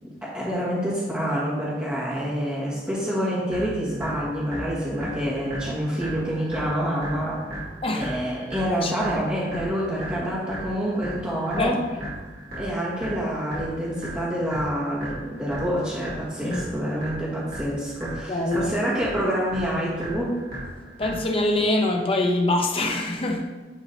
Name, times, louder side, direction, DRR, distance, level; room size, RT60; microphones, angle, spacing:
voice 1, 0.0-7.4 7.9-11.8 12.6-20.4, equal, 10° right, -10 dB, 1.7 m, -27 dB
sound 1, 3.5-21.5, right 1 dB, 60° right, 2.5 m, -37 dB
voice 2, 8.6-8.9 11.6-12.0 16.4-16.6 18.3-18.7 21.0-23.5, left 1 dB, 35° left, 2 dB, 1.0 m, -24 dB
11.0 x 3.8 x 4.1 m, 1.3 s
head